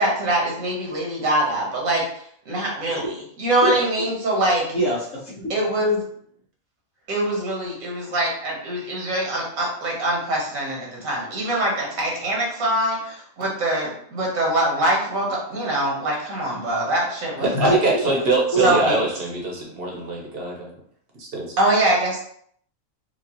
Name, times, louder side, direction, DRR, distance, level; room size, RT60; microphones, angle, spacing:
voice 1, 0.0-2.0 2.5-4.6 5.5-6.0 7.1-17.8 18.6-19.0 21.6-22.2, right 1 dB, 85° right, -2 dB, 1.5 m, -23 dB
voice 2, 4.7-5.5 17.5-18.0 18.5-18.8, right 1 dB, 70° left, -9 dB, 1.5 m, -24 dB
voice 3, 17.4-20.7 21.2-21.5, right 2 dB, 50° right, -1 dB, 1.0 m, -23 dB
4.6 x 2.5 x 2.9 m, 0.63 s
omnidirectional pair, 1.4 m